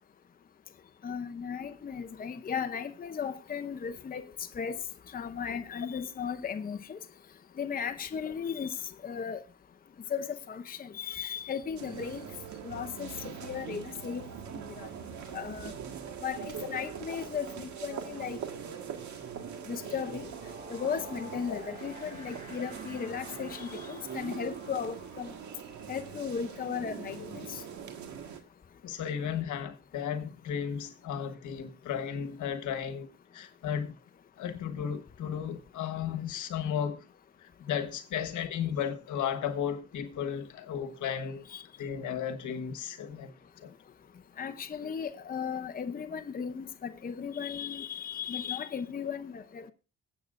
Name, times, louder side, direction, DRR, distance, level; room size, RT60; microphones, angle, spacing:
voice 1, 1.0-4.8 5.1-7.0 7.6-8.8 9.0-9.4 10.1-12.3 12.6-14.3 14.8-14.9 15.3-15.7 16.2-18.4 19.7-20.3 20.7-25.3 25.9-27.6 41.5-41.6 44.4-49.7, left 7 dB, 30° left, 0.7 m, -36 dB
sound 1, 11.8-28.4, right 8 dB, 70° right, 1.7 m, -42 dB
sound 2, 18.3-28.6, equal, 25° right, 4.4 m, -51 dB
voice 2, 28.8-34.0 34.4-37.0 37.4-41.4 41.8-43.7, left 8 dB, 75° left, 1.3 m, -34 dB
20.5 x 8.2 x 2.5 m
cardioid pair, 90°, 30 cm